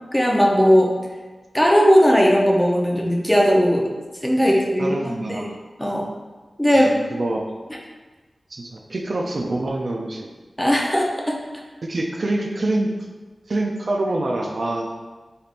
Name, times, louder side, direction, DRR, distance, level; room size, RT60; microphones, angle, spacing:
voice 1, 0.1-0.9 1.5-3.9 4.2-5.5 5.8-6.1 6.6-6.9 10.6-11.4, equal, 10° left, -1 dB, 0.6 m, -17 dB
voice 2, 4.8-5.5 6.7-7.5 8.5-10.3 11.8-12.9 13.5-14.9, right 2 dB, 60° right, 1 dB, 0.4 m, -25 dB
4.2 x 3.4 x 2.5 m, 1.3 s
wide cardioid pair, 80°, 0 cm